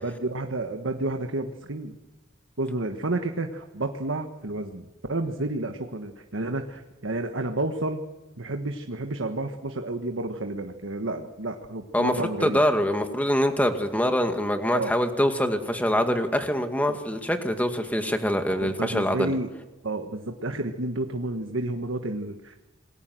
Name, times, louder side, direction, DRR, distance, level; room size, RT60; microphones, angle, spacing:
voice 1, 0.0-2.0 2.6-8.0 8.4-12.6 14.7-15.0 16.9-17.0 18.5-19.5 19.8-22.6, right 2 dB, 75° right, 5 dB, 1.5 m, -30 dB
voice 2, 11.9-19.3, equal, 10° left, 6 dB, 2.1 m, -24 dB
27.5 x 21.0 x 7.8 m, 1.1 s
head